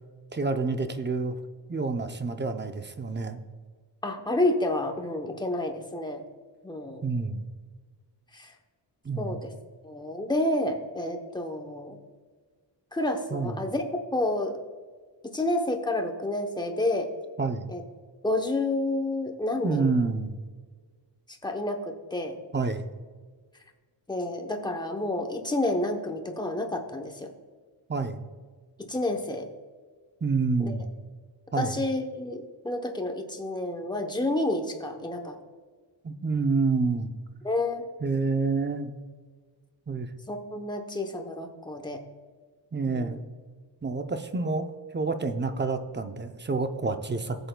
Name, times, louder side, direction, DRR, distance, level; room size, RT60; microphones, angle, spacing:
voice 1, 0.3-1.4 1.7-3.4 7.0-7.4 9.0-9.4 13.3-13.5 17.4-17.7 19.6-20.4 22.5-22.9 27.9-28.2 30.2-30.9 31.5-31.8 36.0-37.1 38.0-38.9 39.9-40.1 42.7-43.2 43.8-47.4, right 4 dB, 25° right, 8 dB, 0.5 m, -28 dB
voice 2, 4.0-6.2 6.6-7.1 8.3-8.5 9.2-9.5 9.8-12.0 12.9-13.8 14.1-14.6 15.2-17.1 17.7-17.8 18.2-19.9 21.3-22.4 24.1-27.3 28.8-29.5 30.6-30.8 31.6-35.4 37.4-37.8 40.3-42.0 42.9-43.2, left 1 dB, 10° left, 3 dB, 0.8 m, -29 dB
15.5 x 8.0 x 2.2 m, 1.5 s
wide cardioid pair, 155°, 45 cm